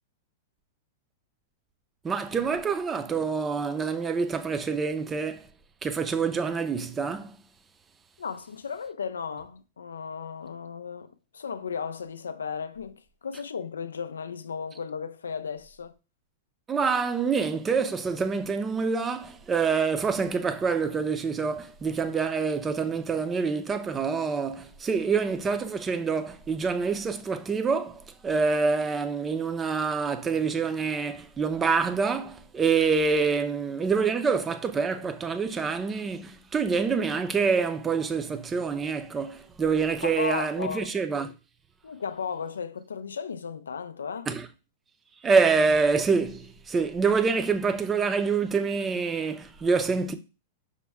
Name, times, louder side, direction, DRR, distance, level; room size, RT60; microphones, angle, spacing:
voice 1, 2.0-5.4 5.8-7.4 16.7-41.3 44.3-44.5 45.2-50.2, right 5 dB, 20° right, 0.5 m, -26 dB
voice 2, 8.2-15.9 40.0-40.9 41.8-44.3, left 6 dB, 90° left, 0.3 m, -35 dB
5.1 x 2.1 x 3.4 m
hypercardioid pair, 110°, 0 cm